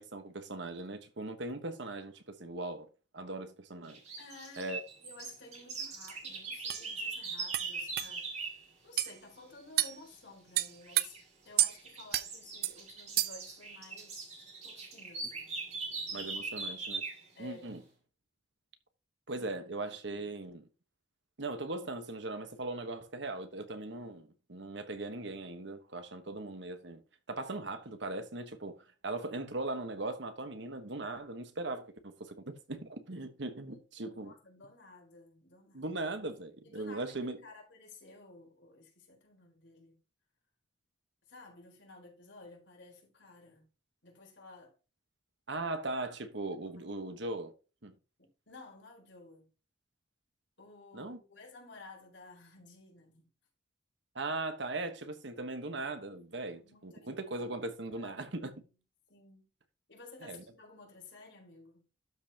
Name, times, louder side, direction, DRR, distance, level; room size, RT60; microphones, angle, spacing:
voice 1, 0.0-2.9 3.1-4.0 4.6-4.8 16.1-17.0 17.4-17.8 19.3-20.7 21.4-27.0 27.3-34.3 35.7-37.4 45.5-47.5 47.8-47.9 50.9-51.2 54.1-58.5 60.2-60.4, right 2 dB, 70° right, 1.3 m, -39 dB
sound 1, 3.9-8.6 10.8-11.2 11.7-17.2, right 4 dB, 35° right, 2.7 m, -41 dB
voice 2, 4.2-11.2 11.4-14.3 14.6-16.3 17.3-17.8 19.3-19.5 33.6-33.8 34.0-35.9 36.6-40.0 41.3-43.7 44.0-44.8 46.7-47.1 48.2-49.5 50.6-53.3 56.4-58.7 59.1-59.5 59.9-61.9, left 3 dB, 70° left, 4.2 m, -54 dB
sound 2, 6.1-6.2 6.7-6.8 7.5-7.7 8.0-8.1 9.0-9.1 9.8-10.0 10.6-11.1 11.6-11.7 12.1-12.3 12.6-12.8 13.2-13.5, right 13 dB, 50° right, 0.5 m, -29 dB
12.0 x 5.5 x 2.9 m
head